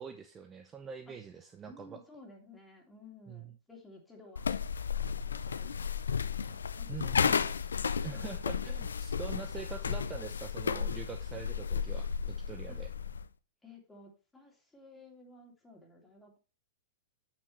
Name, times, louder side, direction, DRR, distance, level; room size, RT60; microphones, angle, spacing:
voice 1, 0.0-2.0 3.3-3.5 6.9-7.5 8.0-12.9, right 6 dB, 20° right, 8 dB, 0.7 m, -44 dB
voice 2, 1.7-4.5 5.1-5.7 6.2-7.3 8.1-8.4 12.7-12.8 13.6-16.4, left 2 dB, 10° left, 0 dB, 2.8 m, -55 dB
sound 1, 4.4-13.3, left 6 dB, 70° left, 0.4 m, -33 dB
8.7 x 7.1 x 3.1 m, 0.33 s
figure-of-eight pair, 100°, 0 cm